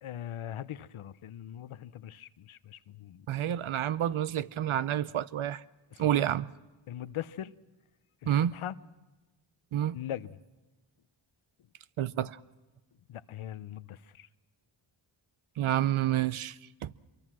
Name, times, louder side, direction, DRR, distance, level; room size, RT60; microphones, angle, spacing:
voice 1, 0.0-3.3 5.9-6.2 6.9-7.5 8.2-8.7 9.9-10.3 13.1-14.3, left 11 dB, 90° left, 0.8 m, -41 dB
voice 2, 3.3-5.6 6.0-6.5 8.2-8.6 9.7-10.0 12.0-12.4 15.6-16.9, right 11 dB, 80° right, 0.8 m, -29 dB
25.5 x 23.5 x 6.2 m
wide cardioid pair, 90°, 48 cm